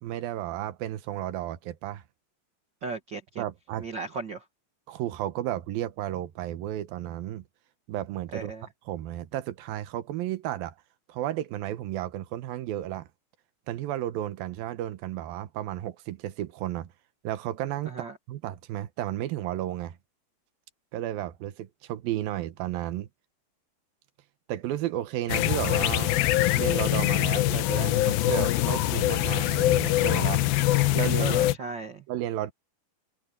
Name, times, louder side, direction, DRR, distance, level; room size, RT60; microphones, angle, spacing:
voice 1, 0.0-2.0 3.4-3.9 4.9-7.4 7.9-8.5 8.9-10.7 11.1-13.1 13.7-16.9 17.2-20.0 20.9-23.1 24.5-26.2 26.6-30.5 30.9-31.4 32.1-32.5, right 13 dB, 80° right, 2.8 m, -33 dB
voice 2, 2.8-3.4 3.8-4.4 8.3-8.6 17.8-18.1 31.2-32.0, right 4 dB, 45° right, 1.7 m, -36 dB
sound 1, 25.3-31.5, left 15 dB, 90° left, 2.7 m, -24 dB
omnidirectional pair, 4.1 m